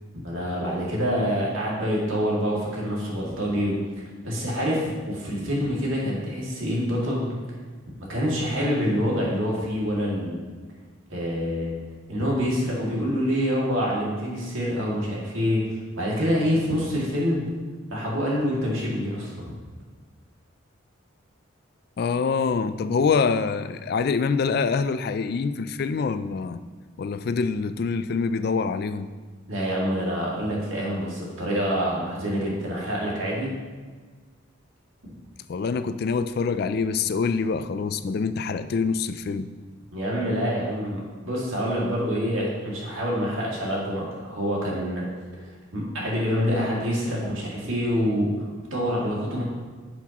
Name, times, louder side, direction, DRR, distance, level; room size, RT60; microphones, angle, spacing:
voice 1, 0.2-3.7 4.2-7.3 8.1-10.4 11.1-11.7 12.1-17.4 17.9-19.5 29.5-33.5 35.0-35.1 39.9-45.1 45.3-49.4, equal, 85° right, -4 dB, 2.3 m, -26 dB
voice 2, 22.0-26.6 27.0-29.1 35.5-39.5, left 5 dB, 50° left, 12 dB, 0.3 m, -25 dB
10.0 x 5.9 x 3.0 m, 1.4 s
head